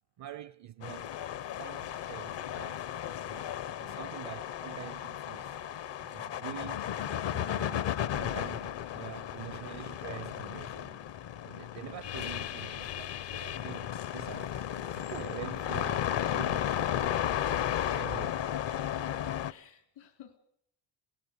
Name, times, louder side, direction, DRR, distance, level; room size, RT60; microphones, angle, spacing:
voice 1, 0.2-2.8 3.2-3.5 3.8-5.6 6.0-7.9 8.2-11.1 11.4-16.8 17.4-18.4, right 13 dB, 60° right, 0.7 m, -46 dB
sound 1, 0.8-19.5, left 10 dB, 65° left, 0.9 m, -34 dB
voice 2, 3.9-4.2 11.6-11.9 19.5-20.4, left 11 dB, 80° left, 3.6 m, -54 dB
27.5 x 18.5 x 5.3 m
cardioid pair, 80°, 47 cm